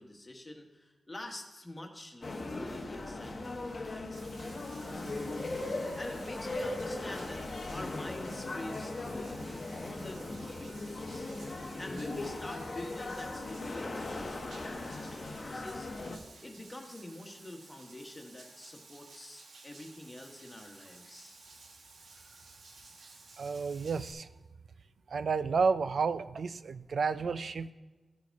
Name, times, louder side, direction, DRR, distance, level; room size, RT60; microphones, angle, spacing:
voice 1, 0.0-5.4 5.9-11.3 11.8-15.9 16.4-21.4, left 1 dB, 20° left, 2 dB, 1.2 m, -46 dB
sound 1, 2.2-16.2, left 2 dB, 35° left, 0.9 m, -38 dB
Bathtub (filling or washing), 4.1-24.1, right 3 dB, 90° right, 1.2 m, -55 dB
voice 2, 23.4-24.3 25.1-27.7, right 5 dB, 60° right, 13 dB, 0.4 m, -31 dB
14.0 x 4.9 x 4.6 m, 1.2 s
wide cardioid pair, 145°, 0 cm